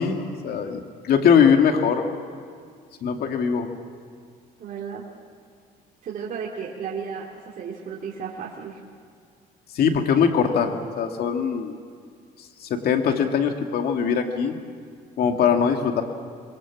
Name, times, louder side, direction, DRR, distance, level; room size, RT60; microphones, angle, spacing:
voice 1, 0.0-2.1 3.0-3.7 9.7-11.8 12.7-14.6 15.2-16.0, left 7 dB, 65° left, 4 dB, 2.5 m, -21 dB
voice 2, 4.6-5.0 6.0-8.8, right 6 dB, 55° right, -3 dB, 3.1 m, -34 dB
27.0 x 22.5 x 7.4 m, 2.2 s
cardioid pair, 110°, 17 cm